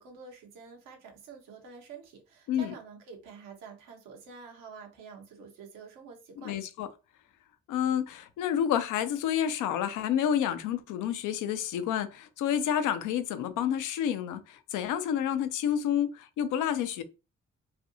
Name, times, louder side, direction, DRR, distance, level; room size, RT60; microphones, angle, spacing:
voice 1, 0.0-6.6, right 5 dB, 75° right, 1.1 m, -48 dB
voice 2, 6.4-6.9 7.7-17.0, left 9 dB, 75° left, 0.6 m, -29 dB
3.2 x 2.6 x 2.6 m
hypercardioid pair, 45°, 31 cm